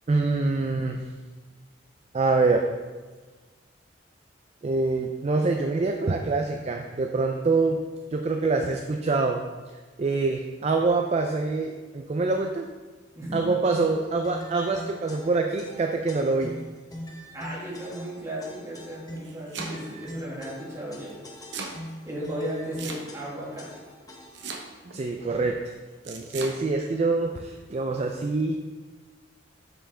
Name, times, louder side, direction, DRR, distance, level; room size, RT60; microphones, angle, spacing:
voice 1, 0.1-1.0 2.1-2.6 4.6-7.8 8.1-9.4 10.0-12.7 13.3-16.6 24.9-25.6 26.1-28.6, right 3 dB, 35° right, 4 dB, 0.4 m, -25 dB
voice 2, 13.2-13.6 17.3-21.1 22.1-23.7, right 1 dB, 15° right, -6 dB, 1.9 m, -35 dB
sound 1, 13.7-24.6, equal, 20° left, 0.7 m, -42 dB
Domestic sounds home sounds, 19.0-20.0 21.1-21.8 22.8-23.4 24.3-25.0 26.0-26.6, right 4 dB, 65° right, 0.8 m, -37 dB
7.1 x 6.1 x 3.3 m, 1.3 s
head